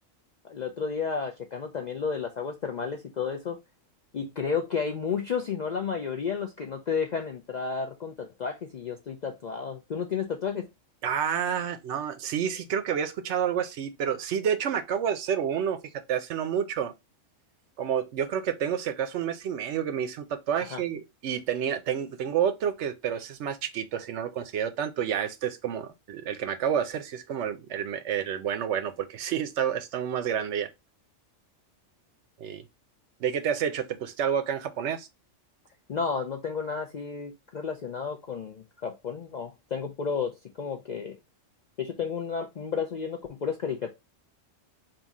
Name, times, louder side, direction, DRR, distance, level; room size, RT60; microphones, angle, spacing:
voice 1, 0.5-3.6 4.1-10.7 20.6-20.8 35.9-41.2 41.8-43.9, left 6 dB, 60° left, 0.4 m, -32 dB
voice 2, 11.0-15.8 16.1-16.9 17.8-30.7 32.4-32.6 33.2-35.1, right 8 dB, 70° right, 0.8 m, -29 dB
3.6 x 2.7 x 4.0 m
omnidirectional pair, 1.3 m